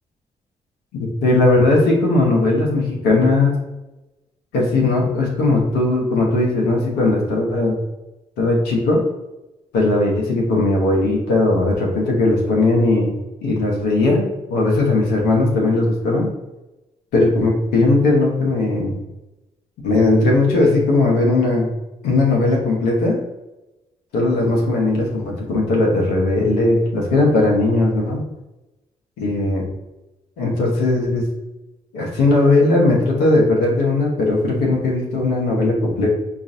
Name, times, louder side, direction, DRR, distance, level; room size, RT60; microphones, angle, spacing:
voice 1, 1.0-3.6 4.5-7.8 8.4-9.0 9.7-13.1 13.4-16.3 17.1-19.0 19.8-21.7 22.0-23.2 24.1-28.2 29.2-29.7 30.4-31.2 31.9-36.2, left 2 dB, 85° left, -2 dB, 0.8 m, -18 dB
4.7 x 2.5 x 2.6 m, 1.0 s
hypercardioid pair, 40°, 17 cm